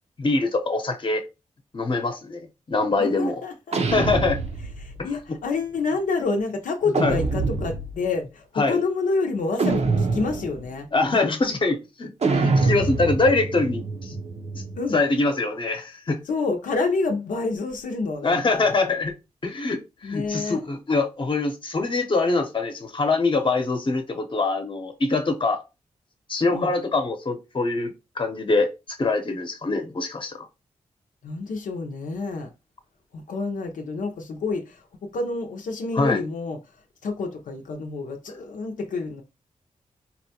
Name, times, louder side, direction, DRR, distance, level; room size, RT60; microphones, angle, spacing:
voice 1, 0.2-1.2 1.7-2.4 2.7-3.4 3.9-4.4 7.0-7.2 8.6-8.8 10.9-14.2 14.9-16.2 18.2-19.1 19.4-25.6 26.3-28.7 29.0-30.5 36.0-36.2, left 3 dB, 40° left, 0.8 m, -24 dB
voice 2, 3.0-3.8 4.8-10.9 14.8-15.0 16.2-18.8 20.0-20.6 26.5-26.7 31.2-32.5 33.1-39.2, left 3 dB, 85° left, 0.6 m, -28 dB
sound 1, 3.7-5.0 6.9-8.0 9.6-10.6 12.2-14.9, right 3 dB, 55° right, 0.7 m, -25 dB
4.1 x 2.2 x 2.8 m
cardioid pair, 55°, 13 cm